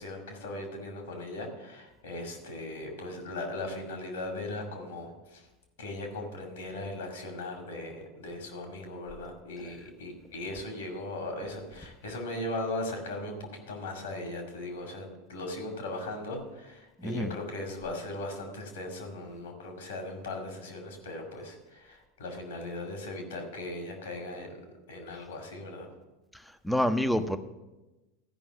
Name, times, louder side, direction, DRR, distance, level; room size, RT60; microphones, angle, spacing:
voice 1, 0.0-5.5 5.8-24.6 24.9-25.9, left 2 dB, 75° left, 3 dB, 2.2 m, -38 dB
voice 2, 17.0-17.3 26.6-27.4, equal, 5° left, 10 dB, 0.7 m, -27 dB
13.0 x 5.4 x 6.2 m, 1.1 s
figure-of-eight pair, 85°, 0 cm